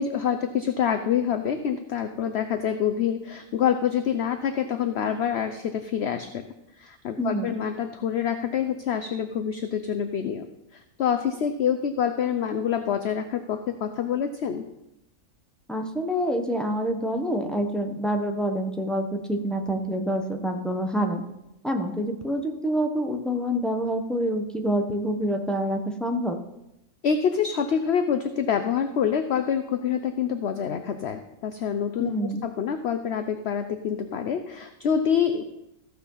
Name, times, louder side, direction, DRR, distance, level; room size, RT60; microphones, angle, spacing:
voice 1, 0.0-6.4 6.8-10.4 10.7-14.6 27.0-35.4, left 8 dB, 55° left, 8 dB, 0.8 m, -26 dB
voice 2, 7.2-7.6 15.7-21.2 21.6-26.4 32.0-32.4, equal, ahead, 3 dB, 0.9 m, -27 dB
15.0 x 6.2 x 5.6 m, 0.88 s
omnidirectional pair, 1.5 m